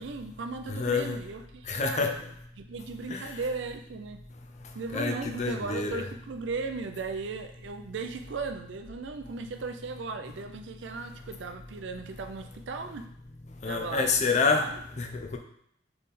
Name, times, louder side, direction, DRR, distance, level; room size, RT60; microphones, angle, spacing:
voice 1, 0.0-2.3 2.6-4.2 4.7-13.1 13.7-14.8, right 4 dB, 65° right, 7 dB, 0.4 m, -37 dB
voice 2, 0.7-1.2 1.7-2.2 3.1-3.3 4.9-6.1 13.6-14.7 15.0-15.4, left 4 dB, 40° left, 4 dB, 0.5 m, -28 dB
3.6 x 3.3 x 4.1 m, 0.73 s
head